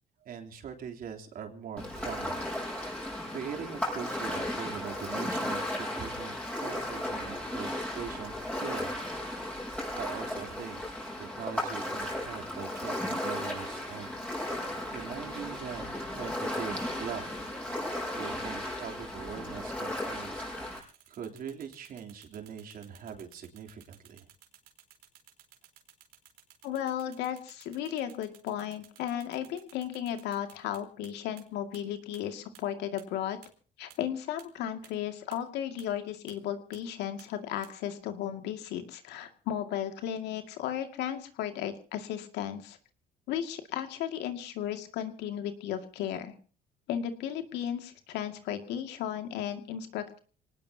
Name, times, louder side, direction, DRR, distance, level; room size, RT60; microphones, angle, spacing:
voice 1, 0.3-2.4 2.9-9.0 9.9-10.8 11.2-14.1 14.5-17.3 18.2-24.3, right 7 dB, 60° right, 3 dB, 3.3 m, -42 dB
Ocean, 1.8-20.8, left 1 dB, 5° left, 6.4 m, -35 dB
sound 1, 20.7-31.1 31.4-31.5 31.7-31.8 32.1-32.2 32.5-32.6 33.0-33.1 33.4-33.5 33.9-34.0 34.4-34.5 34.8-34.9 35.3-35.4 35.8-35.9 36.3-36.4 36.7-36.8 37.2-37.3 37.6-37.7, right 13 dB, 85° right, 4.0 m, -55 dB
voice 2, 26.6-33.4 33.8-42.8 43.3-46.3 46.9-50.2, left 10 dB, 85° left, 7 dB, 2.3 m, -35 dB
26.5 x 19.0 x 2.9 m, 0.40 s
cardioid pair, 110°, 17 cm